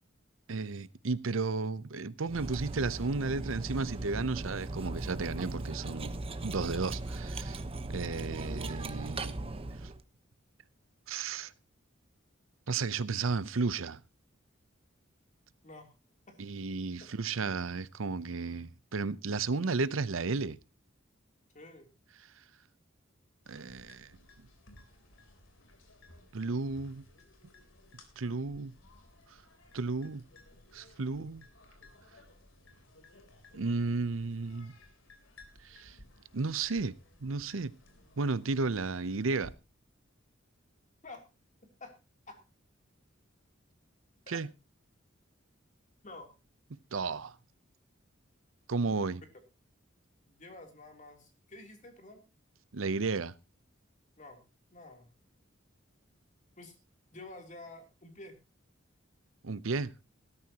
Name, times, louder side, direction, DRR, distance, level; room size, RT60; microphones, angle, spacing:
voice 1, 0.5-6.2 6.4-7.6 7.9-9.4 9.8-9.9 11.1-11.5 12.7-14.0 16.4-20.6 23.5-24.1 26.3-27.1 28.2-28.7 29.7-30.2 30.7-31.4 33.5-34.7 35.6-36.0 36.3-36.9 37.2-37.7 38.2-39.5 44.3-44.5 46.9-47.3 48.7-49.2 52.7-53.3 59.4-59.9, right 4 dB, 80° right, 0.7 m, -33 dB
Cutlery silverware, 2.3-10.0, right 2 dB, 30° right, 1.0 m, -38 dB
voice 2, 21.5-21.9 41.0-41.2 41.8-41.9 42.3-42.4 44.3-44.4 46.0-46.3 50.3-52.2 54.2-55.1 56.6-56.7 57.1-58.3, left 2 dB, 40° left, 3.2 m, -49 dB
sound 1, 23.4-39.6, left 2 dB, 80° left, 3.6 m, -58 dB
18.5 x 13.0 x 2.9 m
head